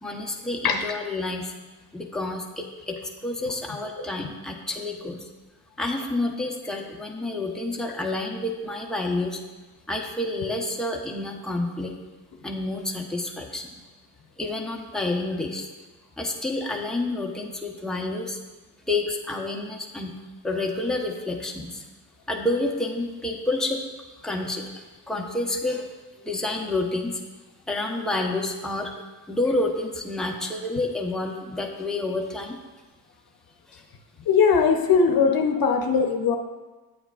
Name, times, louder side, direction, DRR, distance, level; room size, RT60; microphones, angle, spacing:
voice 1, 0.0-1.5 1.9-5.2 5.8-9.4 9.9-11.9 12.4-13.8 14.4-15.7 16.2-18.4 18.9-20.1 20.4-21.8 22.3-23.9 24.2-25.9 26.2-27.2 27.7-28.9 29.3-32.6, left 2 dB, ahead, 0 dB, 0.9 m, -29 dB
voice 2, 34.3-36.4, left 5 dB, 60° left, 4 dB, 0.8 m, -20 dB
9.0 x 8.0 x 2.4 m, 1.2 s
cardioid pair, 85°, 41 cm